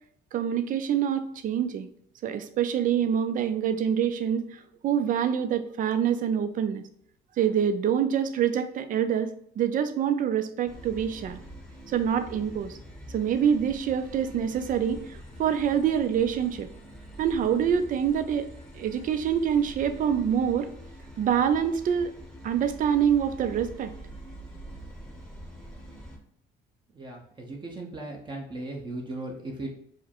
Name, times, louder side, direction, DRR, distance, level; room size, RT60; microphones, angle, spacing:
voice 1, 0.3-1.9 2.2-6.8 7.4-11.4 11.9-12.8 13.1-16.7 17.2-18.5 18.7-20.7 21.2-22.1 22.4-23.9, right 8 dB, 50° right, 10 dB, 0.5 m, -26 dB
sound 1, 10.7-26.2, equal, 5° left, 0.9 m, -45 dB
voice 2, 26.9-29.7, right 2 dB, 25° right, 0 dB, 0.9 m, -37 dB
4.8 x 2.1 x 4.4 m, 0.68 s
cardioid pair, 110°, 17 cm